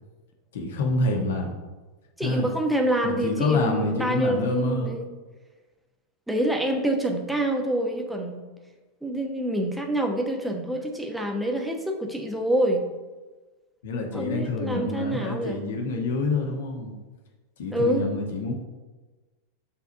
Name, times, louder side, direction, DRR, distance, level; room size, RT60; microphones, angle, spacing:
voice 1, 0.5-1.5 2.2-2.5 3.0-4.9 13.8-16.9 17.6-18.5, left 2 dB, 60° left, 2 dB, 1.4 m, -27 dB
voice 2, 2.2-5.1 6.3-8.4 9.0-12.8 14.1-15.6 17.7-18.2, right 1 dB, 5° right, 2 dB, 1.0 m, -26 dB
5.8 x 4.0 x 6.2 m, 1.2 s
figure-of-eight pair, 90°, 0 cm